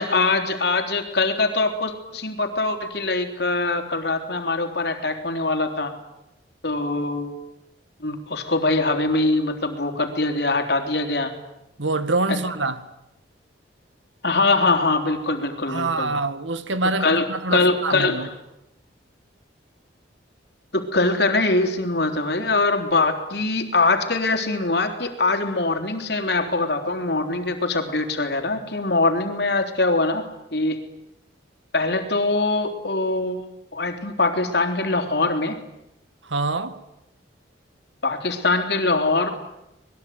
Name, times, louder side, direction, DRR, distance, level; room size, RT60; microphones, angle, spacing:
voice 1, 0.0-5.9 6.6-7.3 8.0-11.3 12.3-12.4 14.2-16.2 17.0-17.2 17.5-18.3 20.7-30.3 30.5-30.8 31.7-35.6 38.0-39.3, left 3 dB, 60° left, 3.7 m, -23 dB
voice 2, 11.8-12.9 15.7-18.3 36.2-36.8, right 3 dB, 80° right, 1.9 m, -25 dB
26.0 x 21.5 x 9.5 m
head